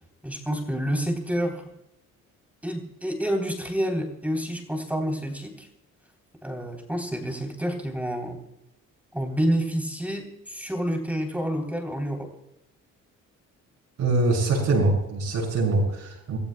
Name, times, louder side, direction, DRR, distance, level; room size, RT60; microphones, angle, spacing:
voice 1, 0.2-1.6 2.6-5.7 6.4-8.4 9.1-12.3, equal, 5° right, 3 dB, 3.3 m, -28 dB
voice 2, 14.0-16.4, right 2 dB, 70° right, -3 dB, 6.3 m, -23 dB
28.0 x 15.0 x 2.2 m, 0.86 s
cardioid pair, 90°, 30 cm